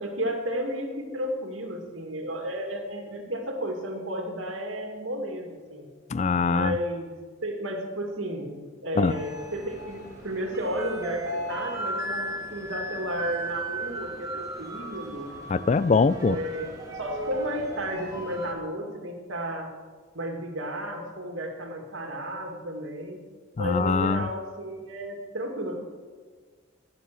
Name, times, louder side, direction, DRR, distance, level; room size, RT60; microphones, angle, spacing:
voice 1, 0.0-5.9 6.5-7.1 7.4-15.3 16.2-19.7 20.1-23.2 23.6-25.8, equal, 85° right, 3 dB, 2.3 m, -33 dB
voice 2, 6.1-6.7 9.0-9.1 15.5-16.4 23.6-24.2, left 4 dB, 35° left, 17 dB, 0.3 m, -22 dB
sound 1, 9.1-18.5, right 1 dB, 15° right, 2.6 m, -36 dB
13.0 x 10.5 x 6.2 m, 1.5 s
head